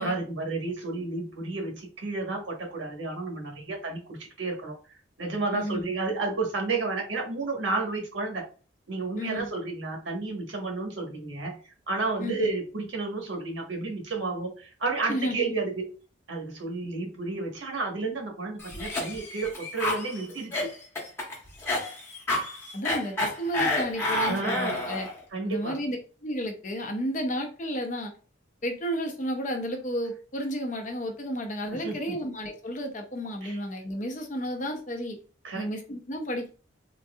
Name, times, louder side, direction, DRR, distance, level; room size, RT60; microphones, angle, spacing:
voice 1, 0.0-8.4 8.9-11.6 11.9-15.9 16.3-20.7 24.2-24.7 25.3-25.8 31.7-32.2 33.4-33.6 35.4-35.7, right 3 dB, 80° right, 0 dB, 1.2 m, -31 dB
voice 2, 5.5-5.9 9.2-9.5 12.2-12.5 15.1-15.5 22.7-25.1 25.4-26.0 26.2-28.1 28.6-35.2 35.5-36.5, equal, 40° left, 4 dB, 0.7 m, -32 dB
Cough, 18.6-25.2, left 2 dB, 15° left, 1.0 m, -30 dB
3.8 x 2.7 x 2.3 m, 0.37 s
head